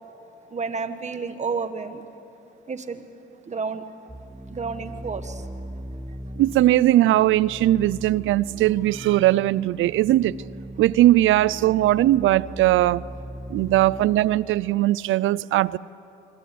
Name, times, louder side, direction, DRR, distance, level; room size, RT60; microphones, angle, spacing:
voice 1, 0.5-2.0 2.7-3.0 3.5-3.8 4.5-5.4, right 5 dB, 35° right, 1.7 m, -30 dB
sound 1, 4.1-14.3, equal, 5° right, 1.2 m, -39 dB
voice 2, 6.4-10.4 10.8-13.1 13.5-15.8, right 15 dB, 80° right, 0.5 m, -19 dB
25.5 x 23.5 x 8.6 m
cardioid pair, 90°, 20 cm